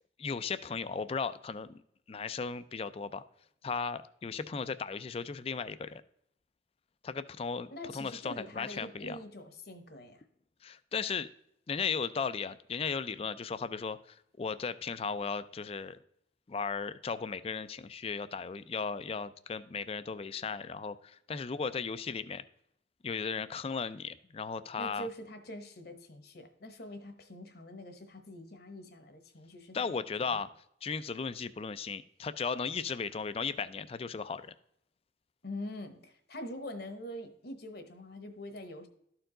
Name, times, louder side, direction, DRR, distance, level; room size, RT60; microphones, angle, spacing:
voice 1, 0.2-1.8 2.1-3.2 3.6-6.0 7.0-9.2 10.6-11.3 11.7-16.0 16.5-22.4 23.0-25.1 29.7-30.5 30.8-34.5, left 5 dB, 30° left, 14 dB, 0.3 m, -36 dB
voice 2, 7.7-10.2 24.8-30.4 35.4-38.9, left 1 dB, 55° left, 7 dB, 1.0 m, -44 dB
13.0 x 4.5 x 3.8 m, 0.74 s
head